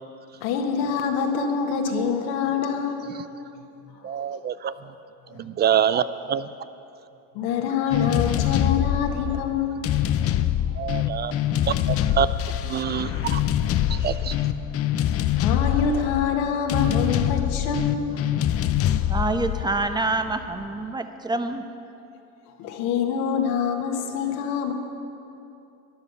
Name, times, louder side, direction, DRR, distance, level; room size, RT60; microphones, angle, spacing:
voice 1, 0.4-3.2 3.9-4.2 5.3-5.4 7.3-9.9 10.6-10.7 11.1-11.2 11.5-11.6 15.0-18.5 22.6-24.7, left 6 dB, 65° left, 3 dB, 1.7 m, -26 dB
voice 2, 4.0-4.7 5.4-6.5 10.8-11.3 11.7-12.3 12.6-13.4 13.9-14.4, right 9 dB, 25° right, 14 dB, 0.3 m, -25 dB
sound 1, 7.9-20.6, left 11 dB, 35° left, 0.6 m, -25 dB
voice 3, 19.1-21.6, right 2 dB, 10° right, 8 dB, 0.9 m, -26 dB
13.0 x 11.0 x 6.9 m, 2.7 s
hypercardioid pair, 80°, 41 cm